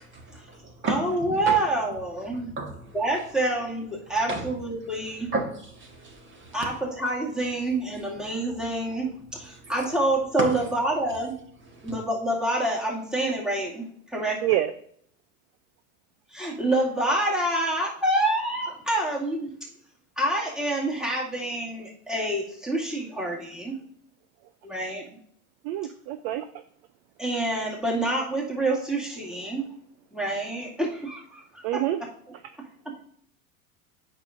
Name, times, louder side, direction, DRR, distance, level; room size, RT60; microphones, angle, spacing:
voice 1, 0.0-1.6 2.3-3.0 4.3-4.5 5.3-6.6 9.5-9.7 10.4-10.6 11.7-11.9, right 2 dB, 25° right, 1.8 m, -33 dB
voice 2, 0.9-2.5 2.9-5.3 6.5-11.4 11.8-13.9 14.1-14.4 16.3-19.5 20.2-23.8 24.6-25.0 27.2-29.7 30.1-31.8, right 1 dB, ahead, 2.1 m, -27 dB
voice 3, 25.6-26.5 31.6-32.0, right 13 dB, 45° right, 0.5 m, -26 dB
8.7 x 5.8 x 2.6 m
hypercardioid pair, 90°, 43 cm